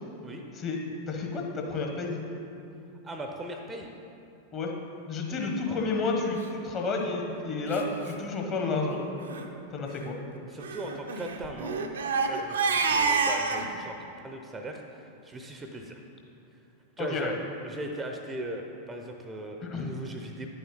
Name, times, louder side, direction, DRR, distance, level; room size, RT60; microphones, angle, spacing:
voice 1, 1.1-2.2 4.5-4.7 5.1-9.0 9.7-10.2 17.0-17.3 19.6-19.9, left 3 dB, 30° left, 1 dB, 1.3 m, -31 dB
voice 2, 3.0-3.9 5.3-5.8 10.5-11.8 12.2-16.0 17.0-17.3 17.6-20.5, right 1 dB, 15° right, 3 dB, 0.7 m, -39 dB
Crying sobbing, 6.8-7.0 7.7-7.8 8.1-8.2 8.5-8.8 9.2-9.4 10.6-13.7, right 4 dB, 65° right, 0.6 m, -28 dB
9.8 x 7.0 x 3.9 m, 2.7 s
figure-of-eight pair, 90°, 0 cm